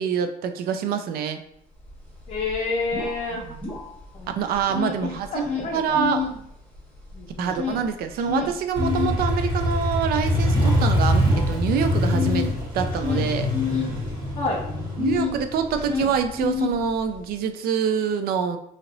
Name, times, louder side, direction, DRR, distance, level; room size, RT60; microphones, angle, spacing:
voice 1, 0.0-1.4 3.4-3.7 4.3-5.4 5.7-6.3 7.4-12.5 12.7-13.5 15.0-18.6, right 7 dB, 65° right, 8 dB, 0.4 m, -25 dB
sound 1, 1.9-2.0 2.2-4.2 4.5-6.4 6.7-15.4 15.7-17.2, left 7 dB, 10° left, 1.1 m, -30 dB
voice 2, 2.3-3.4 4.1-4.3 4.7-6.0 7.1-7.5 14.3-14.6, left 3 dB, 40° left, -3 dB, 0.5 m, -29 dB
Motorcycle, 8.8-16.4, left 1 dB, 25° right, 1.2 m, -24 dB
3.1 x 2.8 x 2.5 m, 0.74 s
cardioid pair, 110°, 17 cm